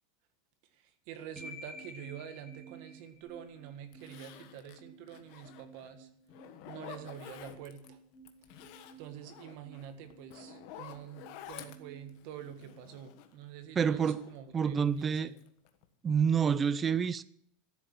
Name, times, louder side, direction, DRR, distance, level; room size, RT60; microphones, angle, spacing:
voice 1, 0.7-6.1 6.7-8.0 9.0-15.4, right 9 dB, 45° right, 1.6 m, -47 dB
sound 1, 1.4-13.4, right 1 dB, ahead, 1.7 m, -54 dB
Zipper (clothing), 3.3-3.4 3.9-5.9 6.3-7.9 8.2-13.4 13.8-15.0 15.4-15.8 16.2-16.3, left 10 dB, 45° left, 1.4 m, -51 dB
voice 2, 13.8-14.2 14.5-15.3 16.0-17.2, right 7 dB, 15° right, 0.5 m, -28 dB
14.0 x 8.1 x 9.9 m
supercardioid pair, 175°, 0 cm